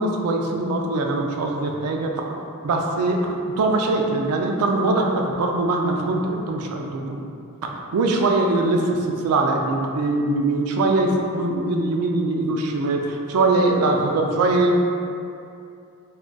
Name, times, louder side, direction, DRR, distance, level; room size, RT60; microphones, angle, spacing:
voice 1, 0.0-2.1 2.6-7.2 7.6-9.0 9.2-14.8, right 2 dB, 80° right, 1 dB, 0.3 m, -22 dB
2.3 x 2.3 x 3.7 m, 2.5 s
head